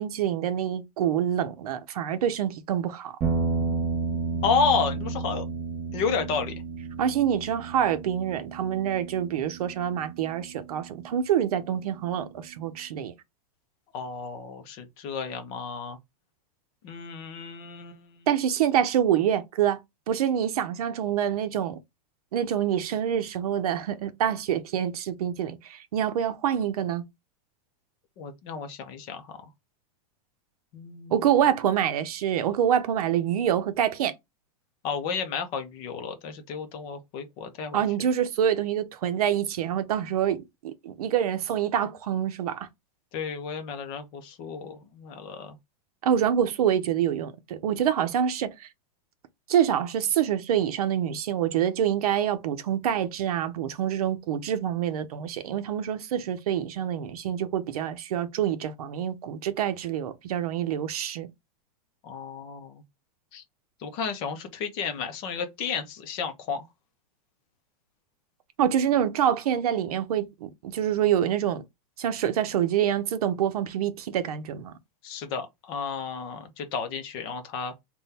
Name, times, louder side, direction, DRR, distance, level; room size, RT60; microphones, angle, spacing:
voice 1, 0.0-3.1 7.0-13.1 18.3-19.8 20.1-21.8 22.3-27.0 31.1-34.1 37.7-42.7 46.0-48.7 49.5-61.3 68.6-71.6 72.0-74.7, right 9 dB, 70° right, 0.7 m, -26 dB
sound 1, 3.2-11.5, right 3 dB, 15° right, 0.7 m, -32 dB
voice 2, 4.4-5.4 5.9-6.5 13.9-16.0 16.8-18.3 28.2-29.3 30.7-31.3 34.8-37.8 43.1-45.6 62.0-62.8 63.3-63.4 63.8-66.7 75.0-77.7, left 5 dB, 25° left, 0.6 m, -31 dB
3.6 x 2.2 x 4.1 m
supercardioid pair, 180°, 20 cm